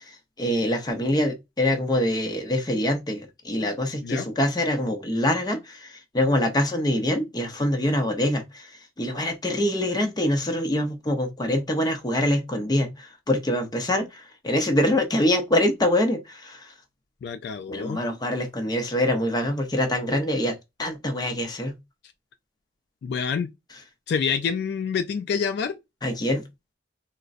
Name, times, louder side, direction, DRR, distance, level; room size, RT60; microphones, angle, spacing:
voice 1, 0.4-5.9 6.1-8.7 9.0-16.6 17.7-21.7 26.0-26.5, left 1 dB, 25° left, 0.6 m, -24 dB
voice 2, 17.2-18.0 23.0-23.5 24.1-25.8, left 6 dB, 65° left, 0.3 m, -27 dB
3.7 x 2.1 x 2.4 m
head